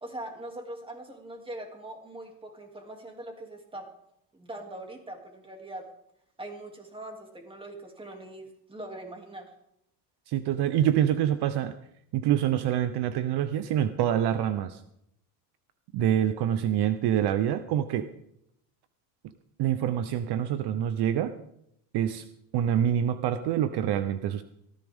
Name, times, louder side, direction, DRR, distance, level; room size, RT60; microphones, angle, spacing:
voice 1, 0.0-3.9 4.3-5.9 6.4-9.5, right 1 dB, 10° right, 3 dB, 2.7 m, -42 dB
voice 2, 10.3-11.7 12.1-14.8 15.9-18.1 19.2-19.3 19.6-21.3 21.9-22.3 22.5-24.4, right 10 dB, 60° right, 11 dB, 0.9 m, -26 dB
18.0 x 14.5 x 3.6 m, 0.76 s
cardioid pair, 140°, 45 cm